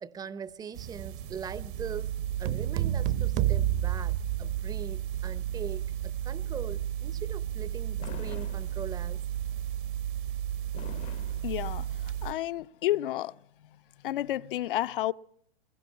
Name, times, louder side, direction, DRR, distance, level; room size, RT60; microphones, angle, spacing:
voice 1, 0.0-2.1 2.4-9.2, right 7 dB, 10° right, 0.8 m, -41 dB
sound 1, 0.7-12.3, right 11 dB, 55° right, 1.5 m, -34 dB
sound 2, 2.4-5.0, right 12 dB, 35° right, 1.0 m, -29 dB
Fireworks, 8.0-9.3 10.7-12.3, left 12 dB, 25° left, 0.8 m, -46 dB
voice 2, 11.3-13.4 14.0-15.1, left 14 dB, 60° left, 0.9 m, -31 dB
21.5 x 16.0 x 9.7 m
hypercardioid pair, 145°, 30 cm